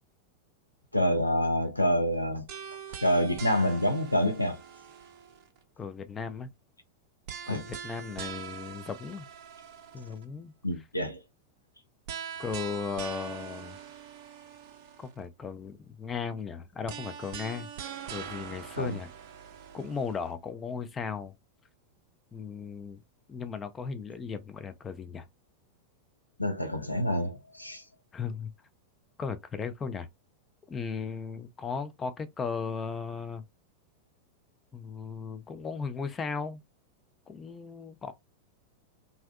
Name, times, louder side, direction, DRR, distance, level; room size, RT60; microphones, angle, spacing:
voice 1, 0.9-2.4 3.0-4.6 7.5-7.7 10.6-11.2 18.8-19.0 26.4-27.8, equal, 85° left, 0.4 m, -27 dB
sound 1, 2.5-5.6 7.3-10.2 12.1-15.2 16.9-20.3, right 8 dB, 45° right, 0.5 m, -43 dB
voice 2, 5.8-6.5 7.5-9.3 9.9-10.5 12.4-13.8 15.0-17.7 18.1-19.1 19.7-21.3 22.3-23.0 23.3-25.3 28.1-28.5 29.2-30.1 30.7-33.4 34.7-36.6 37.3-38.1, left 5 dB, 20° left, 0.4 m, -36 dB
2.5 x 2.2 x 2.2 m
figure-of-eight pair, 90°, 0 cm